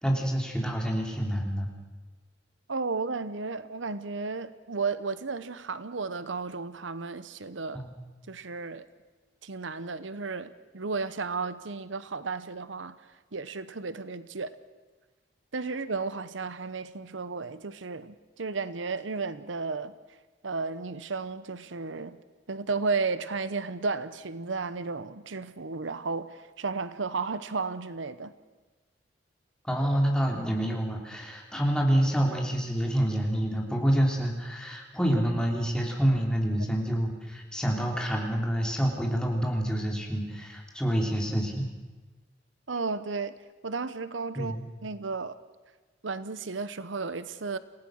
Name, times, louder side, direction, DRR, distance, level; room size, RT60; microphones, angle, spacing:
voice 1, 0.0-1.7 7.7-7.9 29.6-41.7 44.3-44.6, equal, 5° left, 3.2 m, -27 dB
voice 2, 2.7-7.8 8.3-8.8 9.4-13.0 13.3-14.5 15.5-19.9 20.4-22.2 22.5-28.3 42.7-43.4 43.6-44.6 44.8-45.4 46.0-47.6, right 4 dB, 90° right, 0.9 m, -33 dB
27.5 x 17.0 x 6.5 m
head